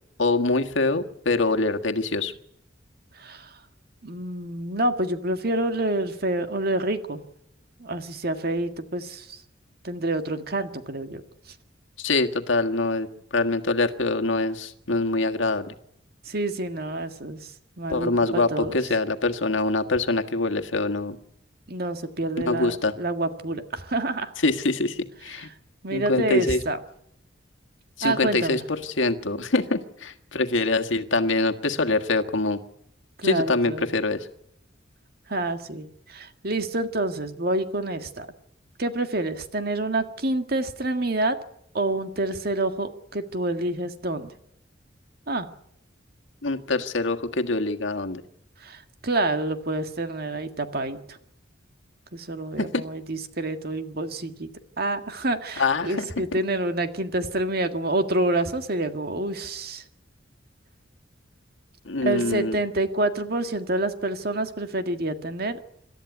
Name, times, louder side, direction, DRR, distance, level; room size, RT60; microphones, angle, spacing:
voice 1, 0.2-2.3 12.0-13.1 13.3-15.7 17.9-21.2 22.4-22.9 24.4-25.5 25.9-26.6 28.0-32.6 33.2-34.3 46.4-48.2 52.6-52.8 55.6-56.1 61.8-62.6, left 3 dB, 85° left, 6 dB, 1.6 m, -24 dB
voice 2, 3.2-3.5 4.0-7.2 7.8-9.4 9.8-11.2 16.3-17.5 17.8-18.8 21.7-24.3 25.8-26.8 28.0-28.6 33.2-33.9 35.3-38.3 38.8-41.4 41.7-44.3 45.3-45.5 48.6-51.2 52.1-54.5 54.8-59.8 62.0-65.6, right 2 dB, 55° right, 8 dB, 1.8 m, -28 dB
26.5 x 13.0 x 9.5 m, 0.77 s
head